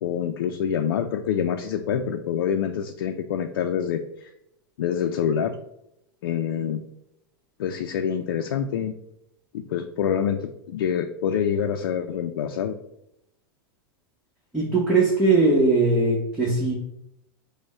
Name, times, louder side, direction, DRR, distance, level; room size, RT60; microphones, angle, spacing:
voice 1, 0.0-4.3 4.8-5.6 6.2-6.8 7.6-8.9 9.5-12.8, left 8 dB, 90° left, 6 dB, 0.4 m, -26 dB
voice 2, 14.5-16.7, right 3 dB, 5° right, -4 dB, 0.9 m, -20 dB
5.1 x 2.1 x 4.7 m, 0.81 s
supercardioid pair, 135°, 12 cm